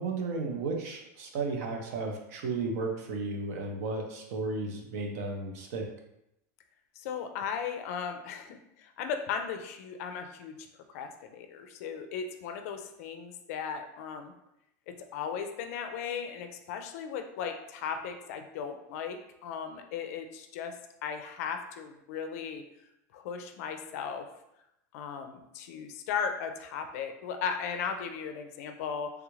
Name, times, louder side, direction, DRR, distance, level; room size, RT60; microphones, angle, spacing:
voice 1, 0.0-5.8, right 3 dB, 60° right, 2 dB, 0.7 m, -34 dB
voice 2, 7.0-10.6 10.9-14.3 14.9-20.7 21.0-22.6 23.1-24.2 24.9-29.1, left 6 dB, 55° left, 6 dB, 0.4 m, -36 dB
3.4 x 2.4 x 3.1 m, 0.82 s
supercardioid pair, 165°, 9 cm